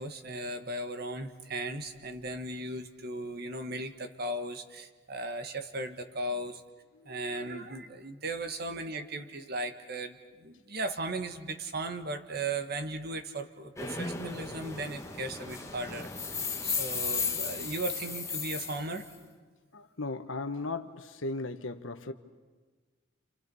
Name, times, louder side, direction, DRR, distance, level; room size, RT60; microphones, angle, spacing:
voice 1, 0.0-6.6 7.1-19.1, right 2 dB, 55° right, 1.7 m, -37 dB
voice 2, 7.0-7.3 19.7-22.1, left 3 dB, 85° left, 1.3 m, -37 dB
sound 1, 13.8-19.1, left 5 dB, 15° left, 1.6 m, -35 dB
29.0 x 29.0 x 5.5 m
head